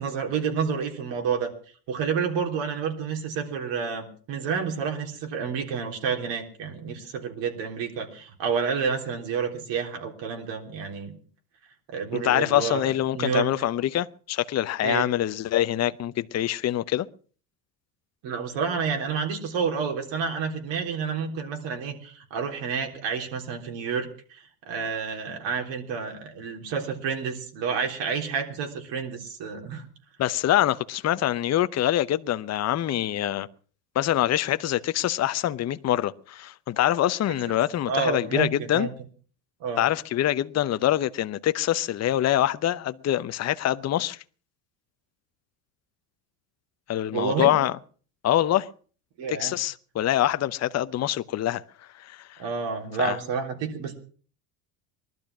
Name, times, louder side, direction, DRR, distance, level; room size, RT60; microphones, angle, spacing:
voice 1, 0.0-1.5 1.9-11.1 11.9-13.5 14.8-15.1 18.2-29.9 37.5-37.6 37.9-38.9 39.6-39.8 47.1-47.5 49.2-49.5 52.4-53.9, right 6 dB, 65° right, 3.8 m, -29 dB
voice 2, 12.1-17.1 30.2-33.5 33.9-38.9 39.8-44.2 46.9-47.7 48.2-48.7 49.3-51.6 52.0-52.4 53.0-53.2, left 12 dB, 35° left, 0.7 m, -25 dB
19.5 x 12.5 x 6.0 m
supercardioid pair, 105°, 47 cm